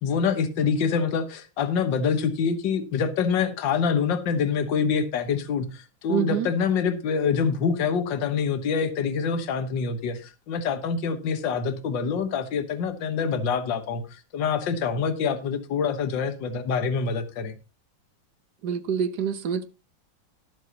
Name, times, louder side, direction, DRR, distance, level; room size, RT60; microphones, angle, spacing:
voice 1, 0.0-17.6, left 6 dB, 65° left, 1.9 m, -26 dB
voice 2, 6.1-6.5 18.6-19.7, right 8 dB, 60° right, 1.3 m, -26 dB
19.0 x 7.3 x 2.9 m
omnidirectional pair, 2.2 m